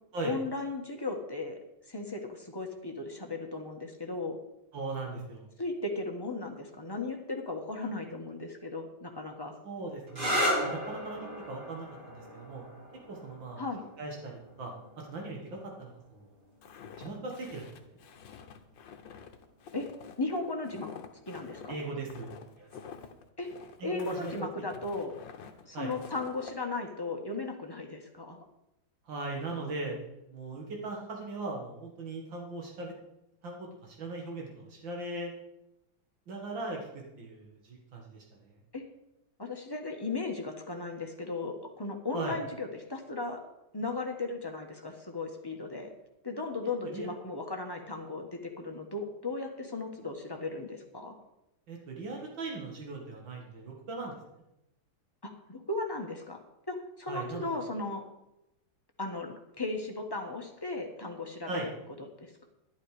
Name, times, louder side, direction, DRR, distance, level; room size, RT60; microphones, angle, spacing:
voice 1, 0.2-1.6 1.9-4.4 5.6-9.5 13.6-13.8 19.7-19.9 20.2-21.8 23.4-23.5 23.8-25.1 25.6-28.4 38.7-38.8 39.4-43.4 43.7-45.9 46.2-51.2 55.2-56.4 56.7-58.0 59.0-61.6 62.0-62.5, left 3 dB, 15° left, 2 dB, 1.2 m, -36 dB
voice 2, 4.7-5.5 9.6-10.3 10.6-12.6 13.1-13.6 14.0-16.3 17.0-17.6 21.7-22.4 23.8-24.5 25.7-25.9 29.1-30.0 30.3-32.9 33.4-35.3 36.3-36.8 37.2-38.5 42.1-42.4 46.9-47.1 51.7-54.1 57.1-57.5 61.5-61.7, right 2 dB, 85° right, 0 dB, 2.6 m, -39 dB
sound 1, 10.1-17.5 18.5-19.0 22.6-22.9, equal, 30° right, 2.1 m, -36 dB
Walk footsteps, 16.6-26.6, left 7 dB, 85° left, 1.7 m, -48 dB
11.5 x 11.0 x 5.0 m, 0.87 s
omnidirectional pair, 2.0 m